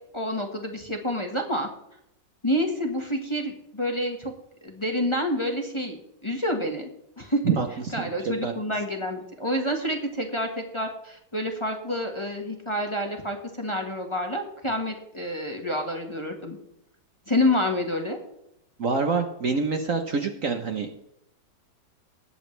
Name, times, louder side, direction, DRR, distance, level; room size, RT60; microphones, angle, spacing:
voice 1, 0.1-1.7 2.4-4.3 4.6-6.9 7.2-7.4 7.9-16.6 17.3-18.2, left 1 dB, 15° left, 3 dB, 1.4 m, -28 dB
voice 2, 18.8-20.9, right 5 dB, 55° right, 5 dB, 1.2 m, -26 dB
20.0 x 8.2 x 3.3 m, 0.79 s
omnidirectional pair, 2.0 m